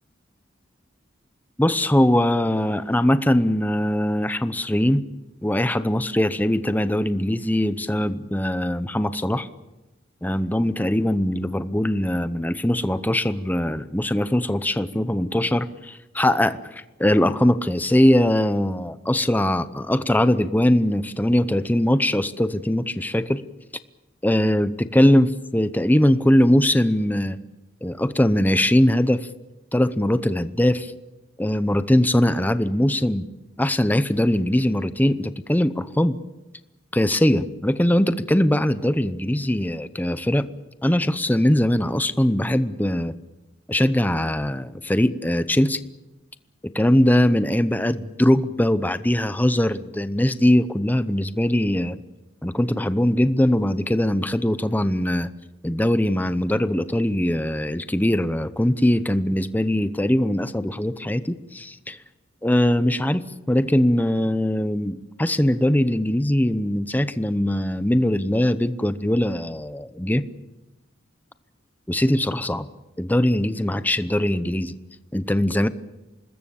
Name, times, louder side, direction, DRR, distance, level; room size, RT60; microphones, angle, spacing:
voice 1, 1.6-5.0 5.4-9.5 10.2-23.4 24.2-27.4 27.8-29.3 29.7-30.9 31.4-33.3 33.6-36.2 36.9-40.5 40.8-43.1 43.7-45.8 46.6-52.0 52.4-55.3 55.6-62.0 62.4-70.2 71.9-72.7 73.0-74.8 75.1-75.7, left 1 dB, 10° left, 12 dB, 0.8 m, -21 dB
25.5 x 20.5 x 7.2 m, 1.0 s
head